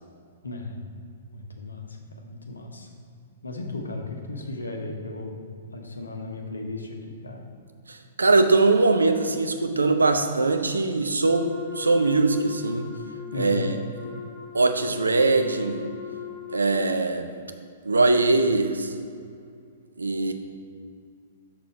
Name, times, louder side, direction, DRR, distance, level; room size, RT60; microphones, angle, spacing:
voice 1, 0.4-0.8 1.3-2.9 3.4-7.5 13.3-13.7, left 2 dB, 75° left, 2 dB, 1.0 m, -35 dB
voice 2, 7.9-12.9 13.4-13.8 14.5-15.8 16.5-17.3 17.9-18.9 20.0-20.3, right 3 dB, 75° right, 6 dB, 0.6 m, -22 dB
Wind instrument woodwind instrument, 11.2-17.0, left 9 dB, 15° right, 1.5 m, -39 dB
6.4 x 6.2 x 4.2 m, 2.3 s
figure-of-eight pair, 110°, 0 cm